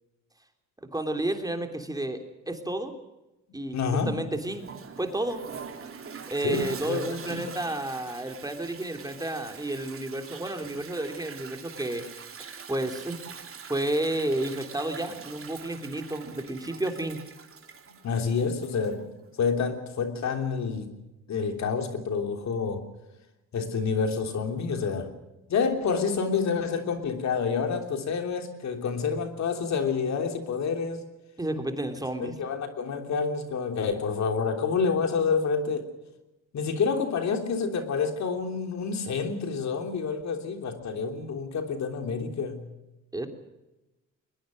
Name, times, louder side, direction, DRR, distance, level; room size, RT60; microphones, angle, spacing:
voice 1, 0.9-2.9 3.5-4.7 5.0-5.4 6.3-12.0 12.7-13.2 13.7-17.2 31.4-32.4 43.1-43.3, right 1 dB, 10° right, 3.2 m, -31 dB
voice 2, 3.5-4.2 6.4-7.5 17.9-19.0 19.4-20.9 21.3-22.8 23.5-25.1 25.5-31.0 32.2-35.9 36.5-42.7, left 5 dB, 65° left, 3.3 m, -28 dB
Toilet flush, 4.4-19.1, right 6 dB, 45° right, 3.1 m, -44 dB
22.0 x 21.0 x 6.4 m
cardioid pair, 90°, 30 cm